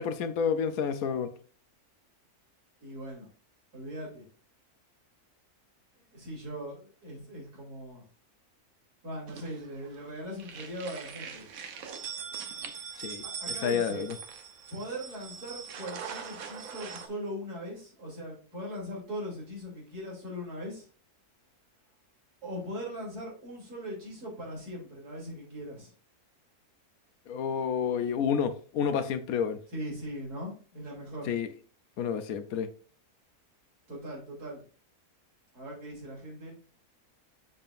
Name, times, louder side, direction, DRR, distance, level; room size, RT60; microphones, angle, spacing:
voice 1, 0.0-1.3 13.0-14.1 27.3-29.6 31.3-31.5 32.0-32.7, left 7 dB, 70° left, 1.1 m, -30 dB
voice 2, 2.8-3.3 3.7-4.2 6.1-8.0 9.0-11.5 13.2-14.1 14.7-20.9 22.4-25.9 29.7-31.3 33.9-34.6 35.5-36.6, equal, 80° right, 3.6 m, -40 dB
sound 1, 9.3-10.0 10.3-17.1, right 6 dB, 65° right, 1.3 m, -41 dB
7.2 x 6.5 x 2.5 m
omnidirectional pair, 1.6 m